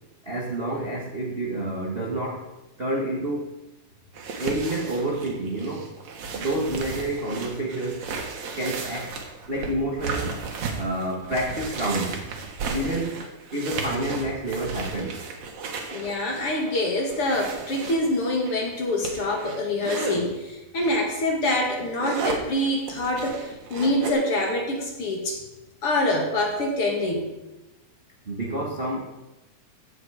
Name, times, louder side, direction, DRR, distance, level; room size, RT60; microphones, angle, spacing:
voice 1, 0.2-2.5 2.8-3.5 4.4-5.9 6.3-8.1 8.6-9.1 9.5-10.3 10.7-12.3 12.7-13.2 13.5-15.2 28.2-29.0, right 1 dB, 80° right, -1 dB, 0.5 m, -28 dB
sound 1, 4.1-20.2 20.8-21.0 21.4-24.1, right 5 dB, 60° right, 2.6 m, -34 dB
voice 2, 15.9-25.4 25.8-27.3, left 1 dB, 45° left, 1 dB, 2.5 m, -25 dB
15.0 x 8.0 x 4.9 m, 1.0 s
omnidirectional pair, 3.9 m